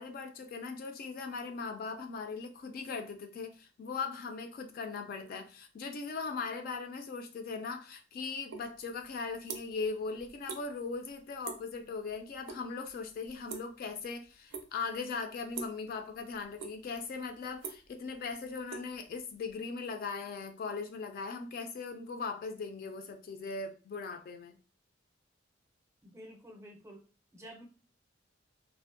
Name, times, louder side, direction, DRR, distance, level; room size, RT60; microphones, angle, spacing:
voice 1, 0.0-24.6, left 4 dB, 50° left, 0.3 m, -39 dB
sound 1, 8.5-8.7 9.0-9.9 10.2-10.6 10.9-11.2 11.4-11.7 12.1-12.6 12.9-14.0 14.5-14.9 15.5-15.9 16.3-17.0 17.3-19.5, right 6 dB, 70° right, 0.4 m, -43 dB
voice 2, 26.0-27.0 27.3-27.6, equal, 15° right, 0.5 m, -50 dB
2.5 x 2.1 x 2.5 m
head